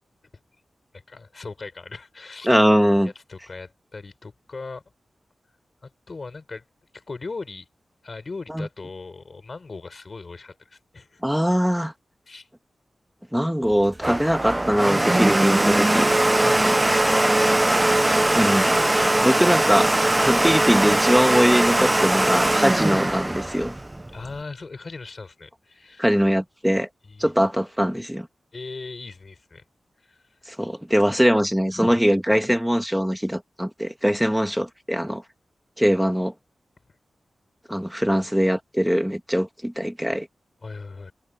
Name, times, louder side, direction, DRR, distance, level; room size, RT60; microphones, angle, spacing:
voice 1, 0.9-2.7 3.0-4.8 5.8-6.6 6.9-7.7 8.0-11.2 12.3-12.5 16.4-17.2 24.1-26.1 27.0-27.3 28.5-29.6 30.0-30.2 40.6-41.1, left 3 dB, 50° left, 5.3 m, -39 dB
voice 2, 2.4-3.1 8.5-8.7 11.2-11.9 13.3-16.1 18.4-18.7 19.2-23.7 26.0-26.9 27.2-28.3 30.5-35.2 35.8-36.3 37.7-40.3, equal, 5° right, 2.0 m, -21 dB
Domestic sounds home sounds, 13.7-24.4, right 1 dB, 20° right, 0.9 m, -20 dB
cardioid pair, 70°, 0 cm